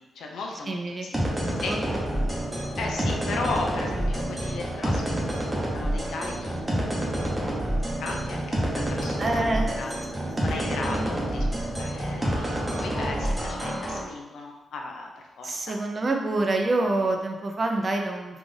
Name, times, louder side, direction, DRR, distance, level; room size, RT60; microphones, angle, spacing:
voice 1, 0.2-2.0 2.8-7.2 7.7-9.9 10.4-15.8, left 3 dB, 85° left, 1 dB, 0.6 m, -36 dB
voice 2, 0.7-1.1 1.7-2.0 2.4-2.7 3.0-3.1 9.2-9.7 10.8-11.2 15.4-18.4, right 2 dB, 40° right, 2 dB, 0.5 m, -27 dB
sound 1, 1.1-14.0, right 1 dB, 20° right, 0.8 m, -28 dB
3.4 x 2.5 x 3.7 m, 1.0 s
cardioid pair, 95°, 0 cm